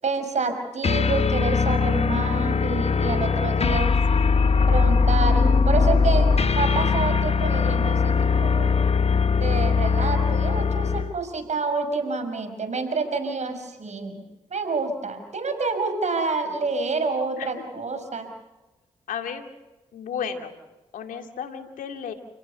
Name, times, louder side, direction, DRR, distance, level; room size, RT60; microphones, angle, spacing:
voice 1, 0.0-3.9 4.7-8.8 9.4-14.2 14.5-18.3, right 4 dB, 60° right, 7 dB, 5.9 m, -28 dB
sound 1, 0.8-11.2, left 5 dB, 50° left, 1.3 m, -21 dB
voice 2, 19.1-19.5 19.9-20.5 20.9-22.1, left 7 dB, 80° left, 7 dB, 2.4 m, -33 dB
30.0 x 18.0 x 7.0 m, 1.1 s
supercardioid pair, 40°, 14 cm